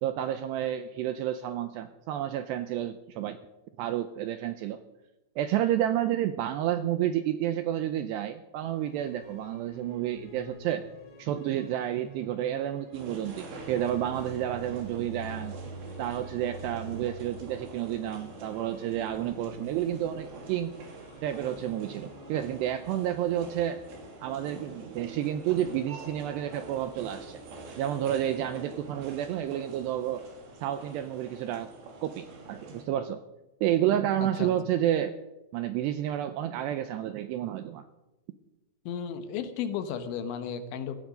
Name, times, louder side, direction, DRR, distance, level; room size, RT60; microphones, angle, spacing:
voice 1, 0.0-3.4 3.8-4.8 5.4-10.8 11.2-15.6 16.0-20.8 21.2-23.8 24.2-27.4 27.8-30.2 30.6-31.7 32.0-33.2 33.6-35.2 35.5-37.8, right 11 dB, 85° right, 10 dB, 2.5 m, -30 dB
sound 1, 8.6-22.4, right 1 dB, 15° left, 2.4 m, -47 dB
sound 2, 12.9-32.9, right 3 dB, 65° right, 4.6 m, -46 dB
voice 2, 34.2-34.5 38.9-41.0, left 7 dB, 75° left, 9 dB, 3.4 m, -34 dB
17.0 x 16.0 x 5.2 m, 1.0 s
omnidirectional pair, 5.6 m